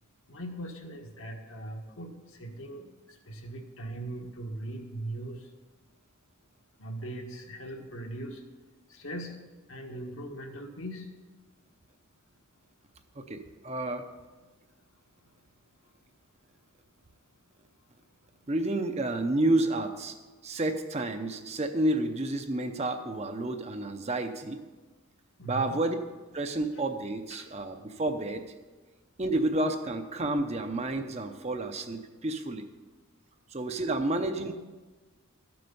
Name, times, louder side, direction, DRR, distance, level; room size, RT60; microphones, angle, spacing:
voice 1, 0.3-5.5 6.8-8.4 8.9-9.4 9.7-11.1 15.2-15.3 25.4-25.8 27.3-27.5, right 1 dB, 65° left, 2 dB, 1.4 m, -40 dB
voice 2, 13.1-14.0 18.5-20.2 20.4-24.6 25.4-26.0 26.3-28.5 29.2-32.6 33.5-34.5, right 2 dB, 30° right, 7 dB, 0.6 m, -30 dB
12.5 x 7.7 x 5.4 m, 1.3 s
head